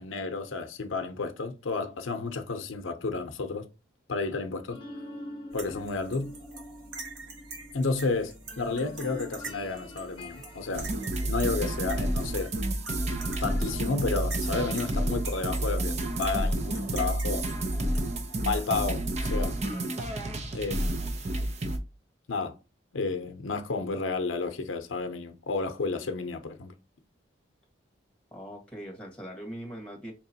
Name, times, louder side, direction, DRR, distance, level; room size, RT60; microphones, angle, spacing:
voice 1, 0.0-3.6 4.1-4.8 5.5-6.3 7.7-10.9 11.3-12.5 13.4-17.5 18.4-19.5 20.5-21.0 22.3-22.6 22.9-26.7, left 4 dB, 90° left, 0.6 m, -31 dB
sound 1, 4.7-10.7, left 1 dB, 25° left, 0.7 m, -45 dB
sound 2, 5.5-18.9, right 3 dB, 75° right, 1.3 m, -45 dB
sound 3, 10.7-21.8, right 1 dB, 35° right, 0.6 m, -30 dB
voice 2, 28.3-30.1, equal, 5° left, 1.3 m, -41 dB
4.6 x 2.9 x 2.7 m
head